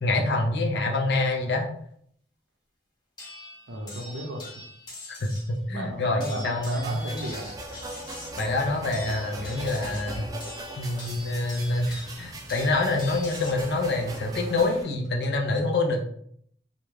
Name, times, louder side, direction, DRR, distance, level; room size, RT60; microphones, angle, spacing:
voice 1, 0.0-1.7 5.1-7.0 8.4-10.3 10.8-16.0, left 2 dB, 65° left, 2 dB, 0.5 m, -26 dB
sound 1, 3.2-5.5 6.2-13.7 14.8-15.2, left 2 dB, 25° left, 0.9 m, -43 dB
voice 2, 3.7-4.4 5.7-7.5, right 1 dB, 80° right, 2 dB, 0.6 m, -34 dB
sound 2, 6.6-14.8, right 1 dB, 35° right, 0.7 m, -46 dB
sound 3, 6.8-14.8, right 2 dB, 20° right, 0.3 m, -41 dB
2.5 x 2.2 x 3.1 m, 0.67 s
head